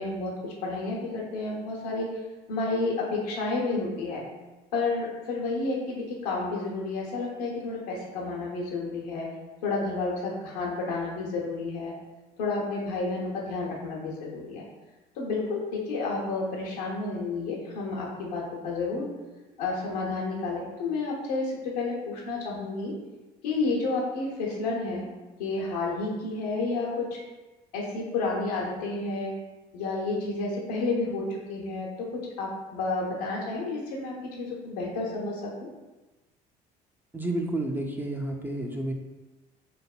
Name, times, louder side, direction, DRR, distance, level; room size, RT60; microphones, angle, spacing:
voice 1, 0.0-2.1 2.5-4.2 4.7-9.3 9.6-11.9 12.4-14.6 15.2-19.1 19.6-22.9 23.4-25.1 25.4-27.2 27.7-29.3 29.7-32.1 32.4-35.7, left 3 dB, 85° left, -3 dB, 0.7 m, -30 dB
voice 2, 37.1-38.9, right 1 dB, 10° right, 1 dB, 0.3 m, -30 dB
3.3 x 2.0 x 2.3 m, 1.1 s
hypercardioid pair, 65°, 19 cm